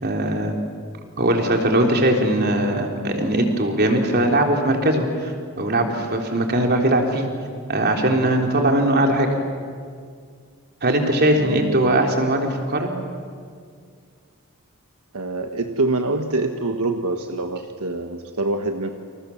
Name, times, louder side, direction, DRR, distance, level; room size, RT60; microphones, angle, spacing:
voice 1, 0.0-0.6 1.2-7.3 7.7-9.3 10.8-12.9, right 1 dB, 45° right, 2 dB, 3.6 m, -20 dB
voice 2, 11.3-12.2 15.1-18.9, right 2 dB, 80° right, 5 dB, 1.4 m, -25 dB
29.0 x 27.5 x 7.2 m, 2.1 s
head